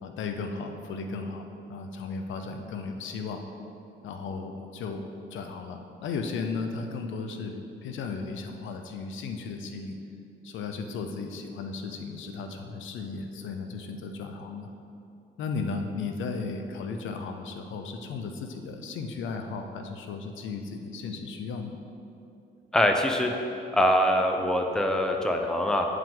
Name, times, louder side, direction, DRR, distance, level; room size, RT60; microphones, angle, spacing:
voice 1, 0.0-3.4 4.0-10.0 10.4-14.7 15.4-21.7, left 4 dB, 75° left, 5 dB, 0.6 m, -35 dB
voice 2, 22.7-23.3 23.7-25.9, equal, 5° left, 3 dB, 0.6 m, -23 dB
9.0 x 4.8 x 3.8 m, 2.7 s
cardioid pair, 90°, 20 cm